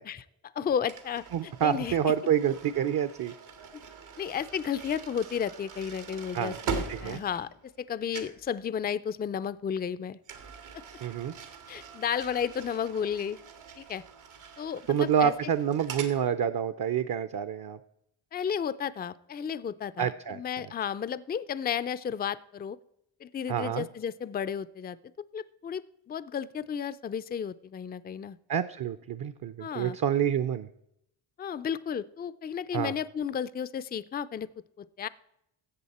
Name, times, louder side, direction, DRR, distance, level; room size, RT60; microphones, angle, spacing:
voice 1, 0.1-2.0 4.2-10.2 11.7-13.4 13.8-14.0 14.6-15.3 18.3-22.8 23.2-25.0 25.3-28.4 29.6-30.0 31.4-34.5 34.8-35.1, left 8 dB, 20° left, 15 dB, 0.3 m, -33 dB
sound 1, 0.9-7.9 8.1-8.5 10.2-16.2, right 5 dB, 90° right, 1.8 m, -42 dB
voice 2, 1.3-3.3 6.3-6.6 6.9-7.2 11.0-11.3 14.9-17.8 20.0-20.7 23.5-23.9 28.5-30.7 32.7-32.9, right 9 dB, 45° right, 11 dB, 0.6 m, -28 dB
13.5 x 7.9 x 4.2 m, 0.79 s
cardioid pair, 90°, 48 cm